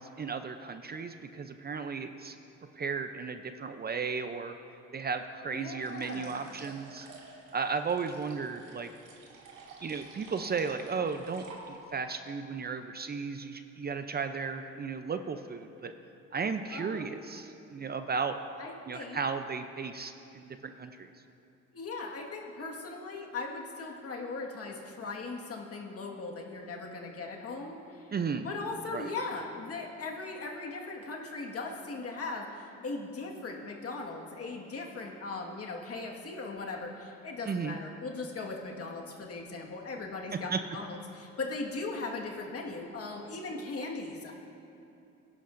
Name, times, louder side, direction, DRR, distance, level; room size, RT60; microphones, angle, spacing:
voice 1, 0.0-2.4 2.8-4.5 4.9-7.1 7.5-8.9 9.8-15.9 16.3-18.4 18.9-21.1 28.1-28.5 28.9-29.1 37.5-37.8 40.5-40.6, right 5 dB, 30° right, 8 dB, 0.5 m, -35 dB
voice 2, 5.5-6.5 16.7-17.2 18.6-19.2 21.7-28.1 28.4-44.3, left 3 dB, 50° left, 0 dB, 1.7 m, -39 dB
sound 1, 5.8-12.0, right 3 dB, 85° right, 2.1 m, -51 dB
18.5 x 11.0 x 2.6 m, 2.9 s
cardioid pair, 90°, 30 cm